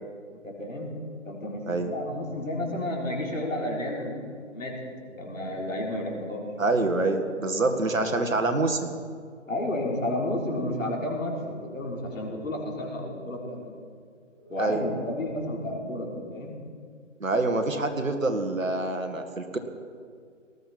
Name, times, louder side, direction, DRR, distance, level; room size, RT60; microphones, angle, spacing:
voice 1, 0.4-1.0 1.2-4.8 5.2-6.4 9.5-13.8 14.5-16.6, left 1 dB, 80° left, -2 dB, 4.2 m, -31 dB
sound 1, 4.8-8.4 9.1-9.3 11.1-12.6 14.3-15.8, equal, 5° right, 0.5 m, -46 dB
voice 2, 6.6-8.9 14.6-14.8 17.2-19.6, right 2 dB, 85° right, 6 dB, 1.9 m, -26 dB
19.0 x 14.0 x 4.4 m, 2.1 s
figure-of-eight pair, 145°, 39 cm